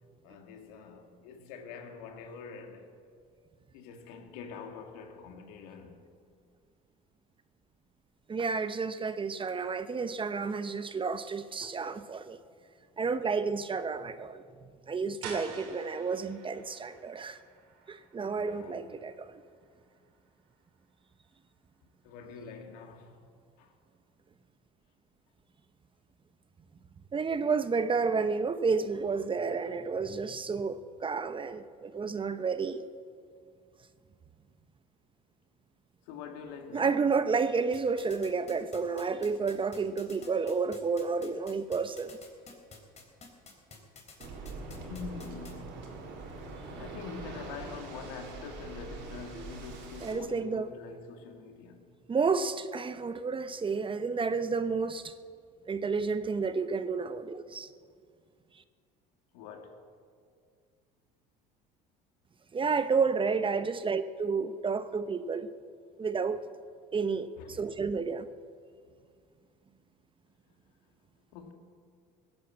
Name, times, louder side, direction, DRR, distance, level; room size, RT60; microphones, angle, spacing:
voice 1, 0.2-2.9 3.7-6.1 18.4-19.2 22.0-23.2 23.6-23.7 36.1-37.1 44.9-45.9 46.8-51.9 59.3-59.8 67.4-67.7 71.3-71.5, left 5 dB, 75° left, 2.3 m, -45 dB
voice 2, 8.3-12.4 13.0-17.4 17.9-19.4 27.1-32.8 36.7-42.2 49.3-49.4 50.0-50.7 52.1-55.1 55.7-57.7 62.5-65.5 66.0-66.4 66.9-68.3, right 5 dB, 25° right, 0.8 m, -31 dB
sound 1, 15.2-20.9, right 5 dB, 80° right, 3.5 m, -49 dB
sound 2, 37.7-45.5, left 4 dB, 35° left, 4.0 m, -50 dB
Waves surf, 44.2-50.1, right 3 dB, 60° right, 4.0 m, -43 dB
17.5 x 11.0 x 7.5 m
supercardioid pair, 85°, 20 cm